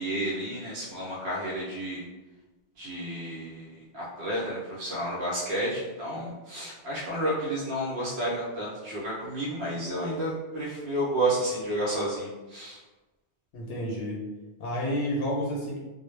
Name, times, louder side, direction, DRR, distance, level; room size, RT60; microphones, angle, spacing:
voice 1, 0.0-2.0 2.8-3.7 3.9-12.8, right 1 dB, 70° right, -6 dB, 0.8 m, -31 dB
voice 2, 13.5-14.2 14.6-15.8, equal, 90° left, -2 dB, 0.9 m, -30 dB
2.1 x 2.0 x 3.1 m, 1.2 s
omnidirectional pair, 1.1 m